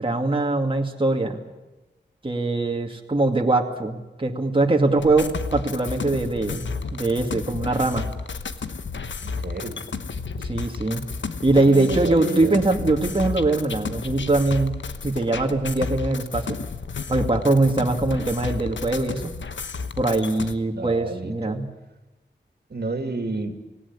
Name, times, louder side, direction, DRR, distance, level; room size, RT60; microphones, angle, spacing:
voice 1, 0.0-1.4 2.2-8.1 10.4-11.0 11.4-16.6 17.1-19.3 20.0-21.7, right 2 dB, 30° right, 2 dB, 2.3 m, -22 dB
sound 1, 5.0-20.5, left 4 dB, 90° left, 1.1 m, -32 dB
voice 2, 9.2-9.8 11.6-12.6 20.7-21.6 22.7-23.5, right 2 dB, 60° right, 7 dB, 2.8 m, -31 dB
18.5 x 17.5 x 9.7 m, 1.1 s
wide cardioid pair, 70°, 19 cm